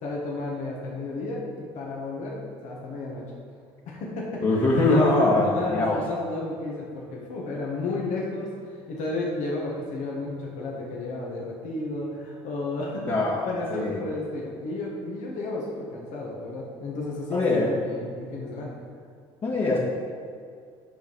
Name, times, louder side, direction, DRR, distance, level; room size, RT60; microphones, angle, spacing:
voice 1, 0.0-3.3 3.9-13.1 13.4-18.8, left 2 dB, 65° left, -3 dB, 1.6 m, -32 dB
voice 2, 4.4-6.0 13.1-13.4 13.7-14.0 17.3-17.7 19.4-19.8, left 2 dB, 45° left, -8 dB, 1.9 m, -22 dB
9.1 x 5.6 x 4.7 m, 2.2 s
hypercardioid pair, 70°, 14 cm